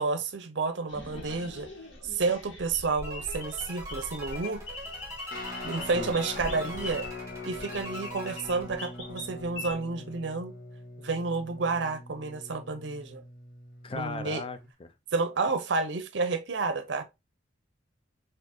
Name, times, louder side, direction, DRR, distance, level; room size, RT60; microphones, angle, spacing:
voice 1, 0.0-1.7 2.0-4.6 5.6-7.1 7.5-10.5 11.0-13.2 13.9-14.4 15.1-17.0, right 4 dB, 70° right, 0.6 m, -30 dB
sound 1, 0.9-9.7, left 2 dB, 85° left, 1.3 m, -42 dB
sound 2, 3.0-9.3, right 1 dB, 15° right, 1.3 m, -45 dB
Guitar, 5.3-14.7, left 2 dB, 50° left, 1.0 m, -43 dB
voice 2, 13.8-14.9, left 3 dB, 30° left, 0.4 m, -37 dB
4.3 x 2.6 x 2.9 m
head